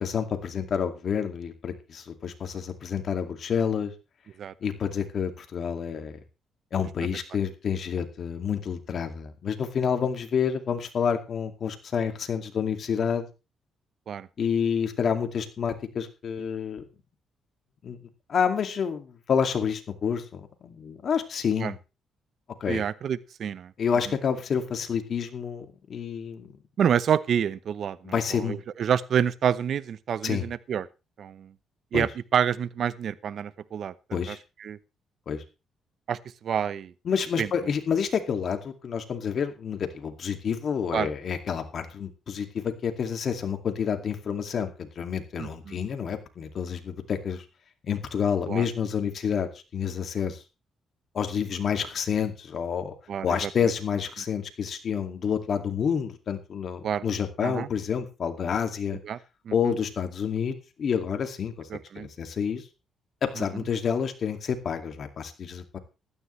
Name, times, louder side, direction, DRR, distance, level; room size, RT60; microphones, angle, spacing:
voice 1, 0.0-3.9 4.6-6.1 6.7-13.2 14.4-16.8 17.8-18.0 18.3-21.8 22.6-22.8 23.8-26.5 28.0-28.6 30.2-30.5 31.9-32.1 34.1-34.4 35.3-35.4 37.1-47.4 47.8-50.4 51.1-52.9 53.2-59.0 59.5-61.7 62.0-62.6 63.2-65.8, left 7 dB, 55° left, 6 dB, 2.3 m, -29 dB
voice 2, 22.7-23.7 26.8-30.9 31.2-31.5 31.9-34.8 36.1-36.9 37.4-37.5 40.9-41.1 45.4-45.8 48.5-48.7 53.1-53.5 56.8-57.0 57.4-57.7 59.0-59.2 59.5-59.7 61.7-62.1 63.4-63.6, right 8 dB, 60° right, 17 dB, 0.8 m, -28 dB
15.5 x 12.5 x 3.3 m, 0.30 s
cardioid pair, 90°, 0 cm